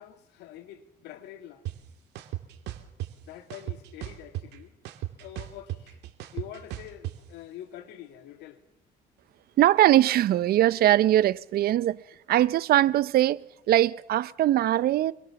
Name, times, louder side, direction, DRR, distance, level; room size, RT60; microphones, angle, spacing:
voice 1, 0.0-1.7 3.2-4.7 5.2-6.0 6.3-8.6 10.9-11.1, left 11 dB, 90° left, 2.4 m, -45 dB
sound 1, 1.7-1.8 2.2-3.1 3.5-4.6 4.9-7.1, right 14 dB, 80° right, 2.6 m, -35 dB
voice 2, 9.6-12.0 12.3-15.1, right 13 dB, 65° right, 0.8 m, -21 dB
27.0 x 21.5 x 7.1 m
cardioid pair, 110°, 17 cm